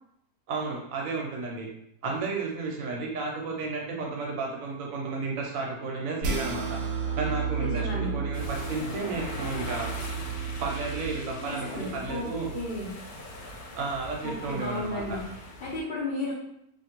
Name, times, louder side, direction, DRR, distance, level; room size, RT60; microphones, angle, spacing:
voice 1, 0.5-1.7 2.0-6.8 7.2-9.9 10.6-12.5 13.7-15.2, right 3 dB, 70° right, 0 dB, 0.9 m, -32 dB
sound 1, 6.2-12.7, right 5 dB, 90° right, 1.1 m, -33 dB
voice 2, 7.6-8.1 11.4-12.9 14.2-15.2 15.6-16.3, left 2 dB, 60° left, -7 dB, 0.6 m, -34 dB
sound 2, 8.3-15.8, left 1 dB, 80° left, 1.1 m, -41 dB
2.6 x 2.4 x 2.9 m, 0.77 s
omnidirectional pair, 1.6 m